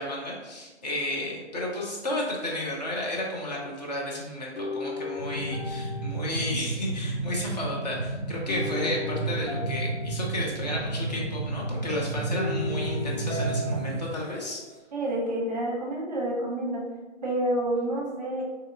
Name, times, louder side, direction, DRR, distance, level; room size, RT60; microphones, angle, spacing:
voice 1, 0.0-14.6, left 1 dB, 35° left, -2 dB, 0.6 m, -32 dB
sound 1, 4.6-7.1 8.5-10.9 12.3-14.8, left 3 dB, 80° left, 0.7 m, -37 dB
sound 2, 5.2-14.0, right 2 dB, 10° left, 0.9 m, -32 dB
voice 2, 14.9-16.8 17.2-18.4, right 1 dB, 35° right, -2 dB, 0.7 m, -28 dB
3.7 x 2.8 x 2.4 m, 1.2 s
figure-of-eight pair, 130°, 35 cm